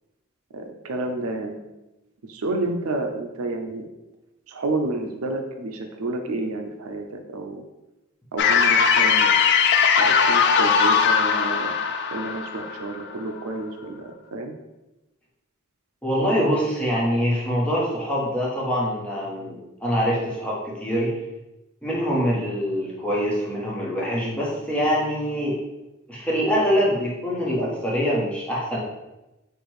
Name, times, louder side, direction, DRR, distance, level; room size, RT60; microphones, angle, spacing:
voice 1, 0.5-1.6 2.2-3.9 4.5-7.6 8.3-9.3 10.0-11.8 12.1-14.5, right 2 dB, 80° right, 4 dB, 0.5 m, -30 dB
sound 1, 8.4-13.4, left 6 dB, 55° left, 0.4 m, -19 dB
voice 2, 16.0-21.1 21.8-25.6 26.1-28.8, equal, 5° left, -6 dB, 1.1 m, -24 dB
4.5 x 2.5 x 4.8 m, 0.99 s
head